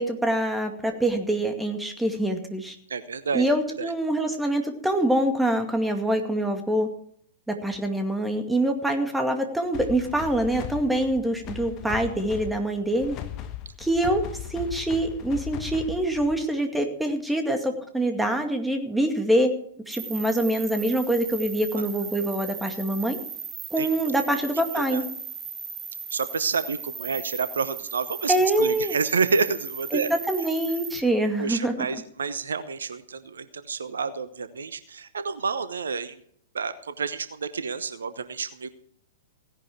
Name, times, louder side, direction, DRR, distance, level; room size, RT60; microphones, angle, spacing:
voice 1, 0.0-2.8 3.3-6.9 7.5-13.2 13.8-14.2 14.5-19.5 19.9-23.2 23.7-25.1 28.3-29.0 29.9-31.7, right 1 dB, 5° right, 5 dB, 2.2 m, -25 dB
voice 2, 2.9-3.5 3.8-3.9 23.8-23.9 24.7-25.0 26.1-30.1 31.4-36.2 36.5-38.7, right 5 dB, 65° right, 13 dB, 1.0 m, -29 dB
sound 1, 9.7-16.5, left 11 dB, 30° left, 1.4 m, -38 dB
sound 2, 19.9-31.0, right 6 dB, 20° right, 1.8 m, -37 dB
17.0 x 11.0 x 4.6 m, 0.64 s
figure-of-eight pair, 105°, 0 cm